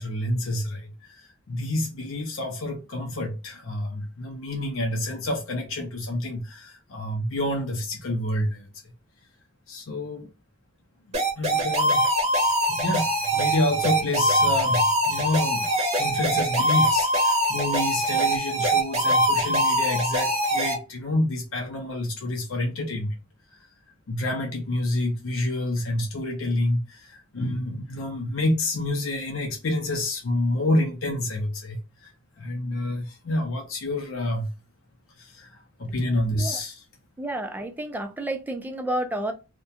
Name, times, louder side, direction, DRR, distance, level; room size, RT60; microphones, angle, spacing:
voice 1, 0.0-8.7 9.7-10.3 11.4-12.1 12.7-15.7 16.0-23.2 23.5-23.7 24.1-32.1 32.4-34.5 35.2-36.8, left 1 dB, 70° left, 0.5 m, -28 dB
sound 1, 11.1-20.7, right 1 dB, 35° right, 0.9 m, -23 dB
voice 2, 37.2-39.3, right 1 dB, 10° right, 0.4 m, -30 dB
2.4 x 2.1 x 2.7 m
head